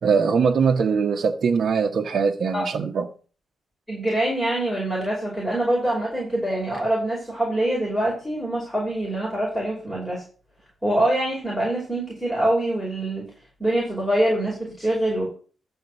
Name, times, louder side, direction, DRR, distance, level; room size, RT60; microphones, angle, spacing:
voice 1, 0.0-3.1, right 5 dB, 50° right, 1.3 m, -21 dB
voice 2, 3.9-10.2 10.8-13.3 13.6-15.3, right 1 dB, 5° left, 6.2 m, -24 dB
12.5 x 4.5 x 8.2 m
cardioid pair, 130°, 0 cm